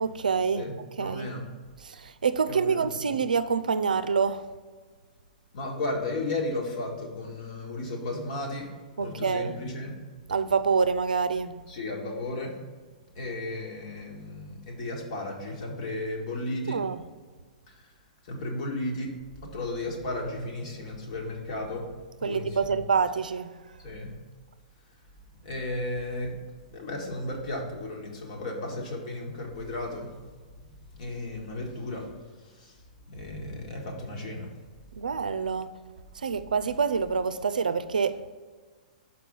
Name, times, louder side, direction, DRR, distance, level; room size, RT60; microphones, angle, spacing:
voice 1, 0.0-0.7 1.0-1.3 1.8-4.5 9.0-9.5 10.3-11.6 16.7-17.0 22.2-23.5 35.0-35.7 36.2-38.3, right 5 dB, 80° right, 0.4 m, -26 dB
voice 2, 0.6-1.5 2.5-3.0 5.5-8.7 9.0-9.9 11.7-12.6 13.2-16.8 17.8-17.9 18.2-19.1 19.4-21.9 22.2-22.8 23.8-24.1 25.4-26.3 26.7-30.1 30.6-32.1 32.6-32.7 33.1-34.5, left 2 dB, 55° left, 1.7 m, -34 dB
6.0 x 4.7 x 5.3 m
figure-of-eight pair, 115°, 4 cm